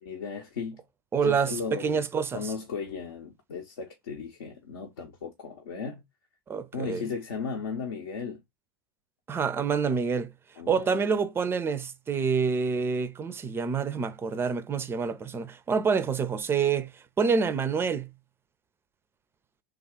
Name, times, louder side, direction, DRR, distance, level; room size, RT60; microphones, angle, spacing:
voice 1, 0.0-0.8 1.2-2.0 2.3-6.0 6.7-8.4 10.6-11.0, left 5 dB, 70° left, 0.7 m, -36 dB
voice 2, 1.1-2.5 6.5-7.1 9.3-10.3 10.7-16.9 17.2-18.1, right 5 dB, 20° right, 0.4 m, -27 dB
3.3 x 2.3 x 3.5 m
figure-of-eight pair, 80°, 12 cm